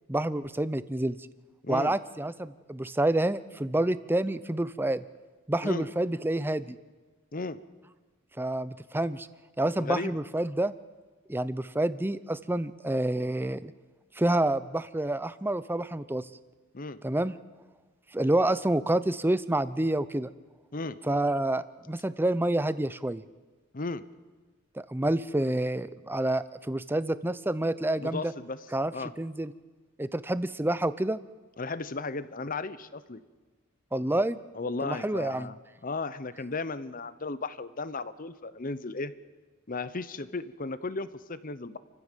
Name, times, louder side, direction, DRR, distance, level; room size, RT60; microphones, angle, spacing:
voice 1, 0.1-1.2 1.7-5.0 5.5-6.8 8.4-9.3 9.6-10.7 11.3-13.7 14.2-16.3 17.0-17.3 18.1-20.3 21.1-23.2 24.8-28.3 28.7-29.5 30.0-31.2 33.9-34.4 34.8-35.5, right 1 dB, 10° right, 15 dB, 0.6 m, -28 dB
voice 2, 1.6-1.9 5.6-5.9 7.3-7.6 9.8-10.2 16.7-17.0 20.7-21.0 23.7-24.0 28.0-28.6 28.9-29.1 31.6-33.2 34.6-35.6 35.8-39.1 39.7-41.8, left 3 dB, 40° left, 14 dB, 0.9 m, -35 dB
29.0 x 15.0 x 7.4 m, 1.3 s
head